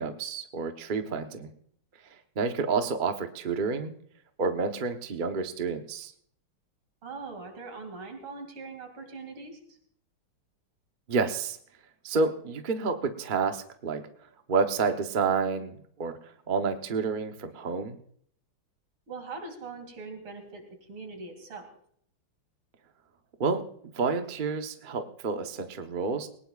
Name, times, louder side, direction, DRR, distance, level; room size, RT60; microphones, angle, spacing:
voice 1, 0.0-1.5 2.4-3.9 4.4-6.1 11.1-11.6 12.0-14.0 14.5-16.1 16.5-18.0 23.4-23.6 23.9-26.3, right 4 dB, 40° right, 6 dB, 0.7 m, -29 dB
voice 2, 7.0-9.8 19.1-21.7, right 4 dB, 80° right, 4 dB, 3.5 m, -41 dB
20.0 x 19.0 x 2.4 m, 0.62 s
omnidirectional pair, 2.3 m